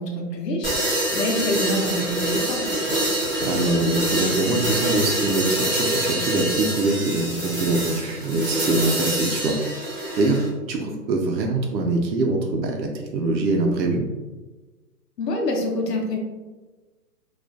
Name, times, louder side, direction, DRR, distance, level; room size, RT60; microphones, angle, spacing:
voice 1, 0.0-2.7 15.2-16.2, left 1 dB, 75° left, 1 dB, 0.7 m, -26 dB
sound 1, 0.6-10.5, right 1 dB, 40° right, 0.4 m, -25 dB
voice 2, 3.1-9.5 10.2-10.4 10.7-14.0, right 2 dB, 90° right, 2 dB, 0.7 m, -24 dB
2.4 x 2.2 x 2.4 m, 1.2 s
hypercardioid pair, 175°, 50 cm